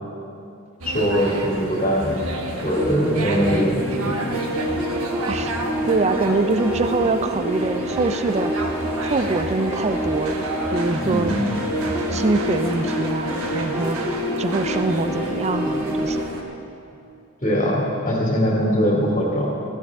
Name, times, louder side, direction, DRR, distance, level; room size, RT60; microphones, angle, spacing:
voice 1, 0.8-2.2 2.6-4.1 11.0-11.4 17.4-19.5, equal, 30° left, -3 dB, 2.3 m, -21 dB
sound 1, 0.8-16.4, right 2 dB, 65° right, 1.3 m, -32 dB
sound 2, 2.1-16.2, equal, 10° right, 3.3 m, -27 dB
voice 2, 5.9-8.5 9.0-11.4 12.1-14.1 14.4-16.2, right 3 dB, 30° right, 9 dB, 0.4 m, -24 dB
17.0 x 14.0 x 3.6 m, 2.7 s
head